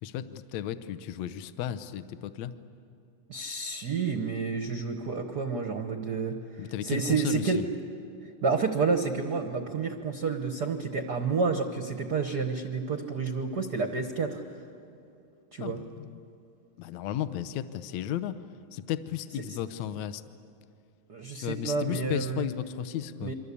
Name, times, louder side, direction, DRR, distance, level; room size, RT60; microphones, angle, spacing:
voice 1, 0.0-2.5 6.6-7.6 15.6-16.2 16.8-18.4 18.7-20.3 21.4-23.3, left 11 dB, 70° left, 12 dB, 1.8 m, -34 dB
voice 2, 3.3-6.4 6.8-7.6 8.4-14.4 15.5-15.8 21.1-22.5 23.2-23.3, right 4 dB, 80° right, 6 dB, 0.9 m, -29 dB
29.0 x 24.0 x 8.5 m, 2.6 s
omnidirectional pair, 3.7 m